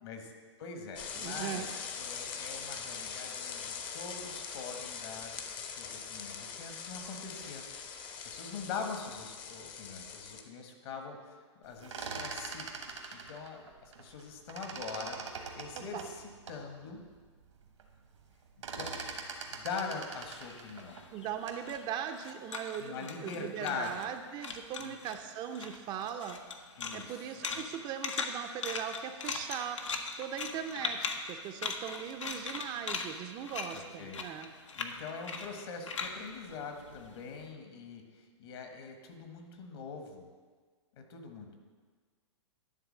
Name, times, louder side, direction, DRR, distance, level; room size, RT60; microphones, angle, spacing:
voice 1, 0.0-1.7 1.9-7.6 8.2-11.2 11.6-12.7 13.1-15.2 15.5-17.0 18.6-18.9 19.5-21.0 22.8-24.1 24.8-25.0 26.8-27.7 33.7-34.2 34.8-40.3 41.0-41.5, left 5 dB, 55° left, 4 dB, 1.4 m, -43 dB
sound 1, 1.0-10.4, left 6 dB, 30° left, 0.7 m, -42 dB
voice 2, 1.2-1.7 15.7-16.0 21.1-26.4 26.9-29.8 30.2-34.5, right 9 dB, 30° right, 7 dB, 0.5 m, -39 dB
sound 2, 11.7-14.2 14.5-16.6 17.1-17.2 17.5-17.9 18.2-21.7, right 4 dB, 80° right, 1.3 m, -42 dB
sound 3, 20.2-24.2 24.4-25.2 25.5-37.4, left 5 dB, 80° left, 0.8 m, -40 dB
11.0 x 3.7 x 6.4 m, 1.5 s
hypercardioid pair, 120°, 16 cm